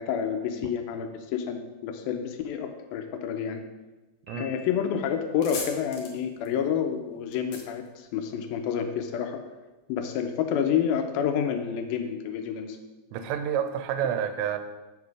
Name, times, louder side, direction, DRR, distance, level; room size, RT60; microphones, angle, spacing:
voice 1, 0.0-3.6 4.4-9.4 9.9-12.8, left 8 dB, 90° left, 5 dB, 2.1 m, -29 dB
Piano, 4.3-5.4, left 6 dB, 25° right, 1.8 m, -49 dB
sound 1, 4.7-4.8 5.1-8.7, left 3 dB, 70° left, 1.5 m, -40 dB
voice 2, 13.1-14.6, right 9 dB, 85° right, 9 dB, 2.9 m, -29 dB
7.2 x 7.1 x 4.8 m, 1.1 s
omnidirectional pair, 5.0 m